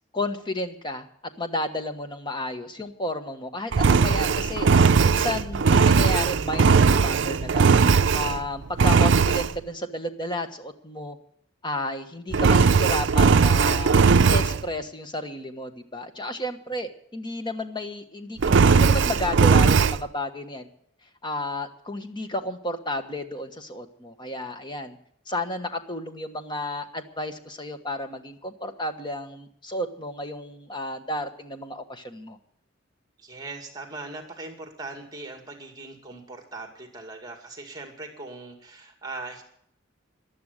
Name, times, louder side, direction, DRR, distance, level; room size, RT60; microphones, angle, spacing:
voice 1, 0.1-1.1 1.4-4.7 5.0-7.8 8.1-11.2 11.6-13.9 14.3-20.7 21.2-25.0 25.3-32.4, left 1 dB, 25° left, 7 dB, 1.3 m, -32 dB
Engine, 3.7-8.4 8.8-9.5 12.3-14.6 18.4-20.0, right 5 dB, 60° right, 0.5 m, -18 dB
voice 2, 33.2-39.4, right 3 dB, 20° right, 4 dB, 2.2 m, -40 dB
15.0 x 11.5 x 6.6 m, 0.70 s
head